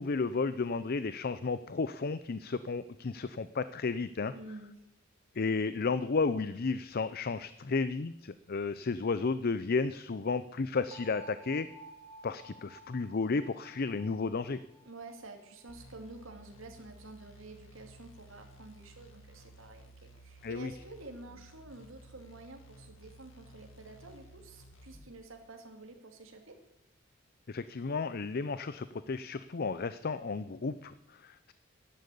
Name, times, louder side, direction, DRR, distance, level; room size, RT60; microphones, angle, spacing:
voice 1, 0.0-4.3 5.4-11.7 12.2-14.6 20.4-20.7 27.5-31.5, left 4 dB, 50° left, 14 dB, 0.5 m, -33 dB
voice 2, 4.3-4.8 14.9-26.6, right 2 dB, 80° right, 3 dB, 2.4 m, -49 dB
sound 1, 10.9-16.7, right 1 dB, 30° right, 2.4 m, -54 dB
sound 2, 15.7-25.1, right 1 dB, 75° left, 2.1 m, -55 dB
12.0 x 12.0 x 8.4 m, 0.85 s
head